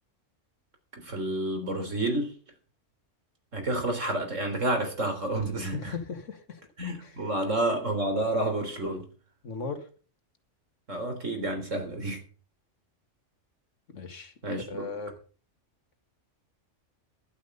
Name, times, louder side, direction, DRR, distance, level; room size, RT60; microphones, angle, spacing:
voice 1, 1.0-2.3 3.5-5.9 6.8-9.1 10.9-12.2 14.4-14.9, right 1 dB, 85° right, 5 dB, 4.0 m, -29 dB
voice 2, 5.7-6.6 7.0-7.2 9.4-9.9 13.9-15.1, left 4 dB, 75° left, 7 dB, 2.2 m, -38 dB
11.5 x 10.5 x 5.5 m, 0.39 s
omnidirectional pair, 1.3 m